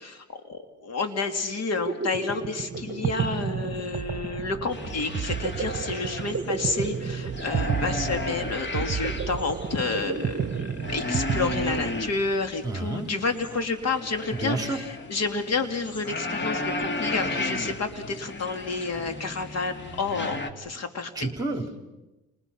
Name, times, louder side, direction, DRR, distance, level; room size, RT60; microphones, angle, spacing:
voice 1, 0.0-21.3, left 4 dB, 60° left, 6 dB, 2.9 m, -30 dB
sound 1, 1.6-12.4, right 6 dB, 40° right, 1.2 m, -31 dB
sound 2, 4.7-20.5, left 2 dB, 35° left, 2.7 m, -34 dB
voice 2, 12.6-13.1 14.3-14.8 21.1-21.9, right 2 dB, 10° right, 5 dB, 3.4 m, -30 dB
29.5 x 29.5 x 5.8 m, 1.0 s
cardioid pair, 90°, 30 cm